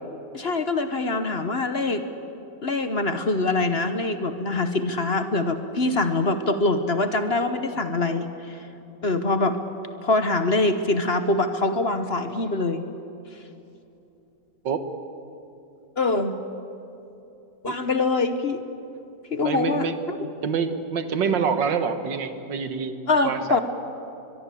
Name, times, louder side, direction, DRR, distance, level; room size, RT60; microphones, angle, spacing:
voice 1, 0.3-2.0 2.6-8.7 9.0-9.6 10.0-12.8 16.0-16.4 17.6-18.6 19.3-20.3 23.1-23.6, left 2 dB, 40° left, 9 dB, 1.1 m, -24 dB
voice 2, 19.4-19.9 20.4-22.9 23.2-23.6, right 6 dB, 85° right, 9 dB, 2.0 m, -26 dB
23.0 x 23.0 x 8.5 m, 2.9 s
omnidirectional pair, 1.9 m